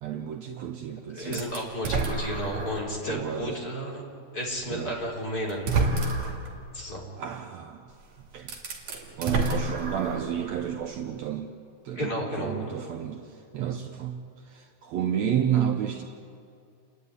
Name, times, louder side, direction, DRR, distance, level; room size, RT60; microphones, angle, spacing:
voice 1, 0.0-1.6 1.8-2.1 3.1-3.6 4.7-5.0 7.2-7.9 8.3-8.5 9.2-11.5 11.8-16.0, right 9 dB, 85° right, 6 dB, 1.5 m, -31 dB
voice 2, 1.1-4.0 4.3-5.7 6.7-7.1 11.9-12.7, equal, 25° left, -2 dB, 3.9 m, -32 dB
sound 1, 1.3-2.9 3.5-3.6 4.8-4.9 5.5-6.5 7.9-8.0 8.4-10.4, right 3 dB, 50° right, 3.7 m, -29 dB
29.5 x 12.0 x 9.7 m, 2.4 s
omnidirectional pair, 4.3 m